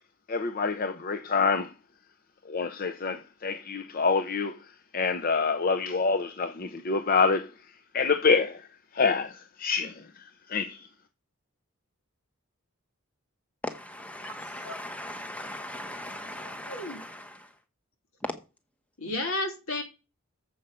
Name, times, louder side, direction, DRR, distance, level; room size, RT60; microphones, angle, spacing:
voice 1, 0.3-1.7 2.5-4.6 4.9-7.5 7.9-8.7 8.9-10.0 10.5-10.9, left 4 dB, 40° left, 0.6 m, -26 dB
voice 2, 13.6-17.5, left 1 dB, 5° left, 1.0 m, -39 dB
voice 3, 14.2-14.7 16.1-17.0 19.0-19.8, left 2 dB, 80° left, 2.8 m, -34 dB
7.6 x 5.3 x 6.8 m
head